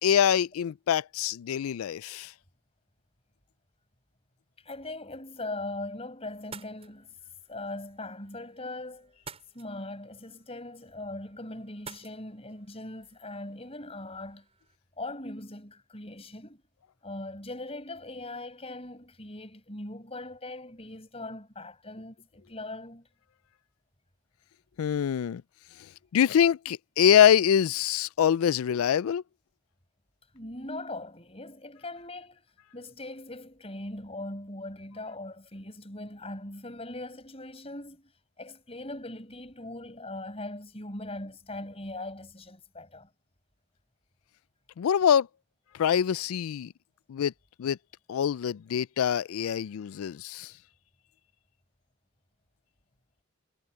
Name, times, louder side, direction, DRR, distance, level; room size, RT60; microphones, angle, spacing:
voice 1, 0.0-2.3 24.8-25.4 26.1-29.2 44.8-45.3 45.7-46.7 47.1-47.3 47.6-47.8 48.1-50.5, left 9 dB, 80° left, 0.3 m, -24 dB
voice 2, 4.6-7.1 7.5-9.2 9.5-14.4 15.0-16.6 17.0-23.1 30.3-32.4 32.7-38.1 38.4-43.1, left 2 dB, 25° left, 6.8 m, -40 dB
sound 1, 6.3-14.8, right 5 dB, 30° right, 7.2 m, -52 dB
head